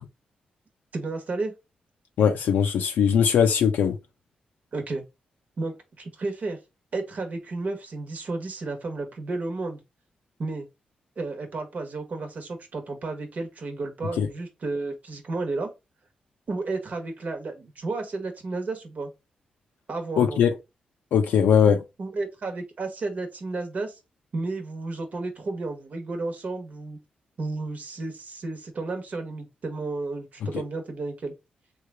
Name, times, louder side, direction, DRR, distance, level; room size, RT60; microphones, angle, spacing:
voice 1, 0.9-1.5 4.7-5.0 5.6-6.6 6.9-9.8 10.4-10.7 11.2-15.7 16.5-19.1 19.9-20.4 22.0-24.0 24.3-27.0 27.4-31.3, right 3 dB, 55° right, 1.1 m, -32 dB
voice 2, 2.2-4.0 14.2-14.3 20.2-20.5 21.1-21.8, left 7 dB, 85° left, 0.4 m, -20 dB
3.2 x 2.4 x 3.2 m
cardioid pair, 60°, 3 cm